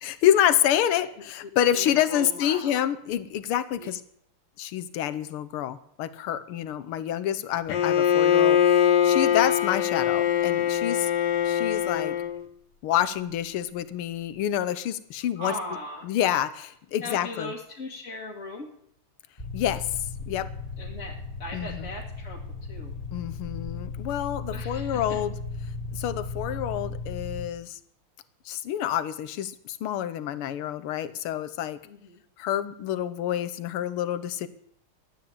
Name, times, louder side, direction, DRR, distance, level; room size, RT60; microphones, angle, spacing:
voice 1, 0.0-4.0 4.6-11.1 11.4-12.2 12.8-15.5 16.0-17.5 19.5-19.9 20.3-20.5 21.5-21.9 23.1-25.3 25.9-27.8 28.4-31.8 32.4-34.5, left 11 dB, 80° left, 13 dB, 1.8 m, -27 dB
voice 2, 1.7-2.8 3.8-3.9 6.5-6.9 15.4-16.1 17.0-18.7 20.8-22.9 24.5-25.2 31.8-32.2, left 1 dB, 35° left, -3 dB, 2.0 m, -38 dB
Bowed string instrument, 7.7-12.4, left 9 dB, 60° left, 1.4 m, -22 dB
sound 1, 19.4-27.4, left 3 dB, 15° left, 2.2 m, -36 dB
12.5 x 9.4 x 8.5 m, 0.71 s
omnidirectional pair, 2.4 m